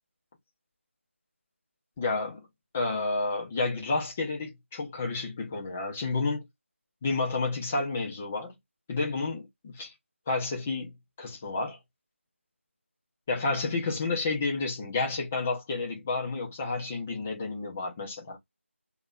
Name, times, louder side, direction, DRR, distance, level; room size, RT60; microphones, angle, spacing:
voice 1, 2.0-2.5 2.7-6.5 7.0-8.5 8.9-9.9 10.3-10.9 11.2-11.8 13.3-18.4, left 3 dB, 5° left, 0.3 m, -30 dB
2.8 x 2.5 x 3.8 m
figure-of-eight pair, 170°, 7 cm